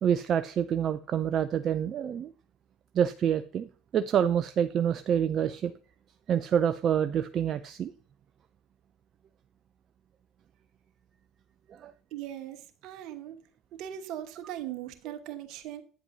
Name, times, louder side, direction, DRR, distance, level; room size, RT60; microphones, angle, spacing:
voice 1, 0.0-2.3 2.9-5.7 6.3-7.9 11.7-11.9, right 9 dB, 45° right, 11 dB, 0.5 m, -27 dB
voice 2, 12.1-13.4 13.7-15.8, right 11 dB, 65° right, 9 dB, 1.2 m, -39 dB
9.0 x 8.0 x 2.7 m, 0.40 s
hypercardioid pair, 70°, 0 cm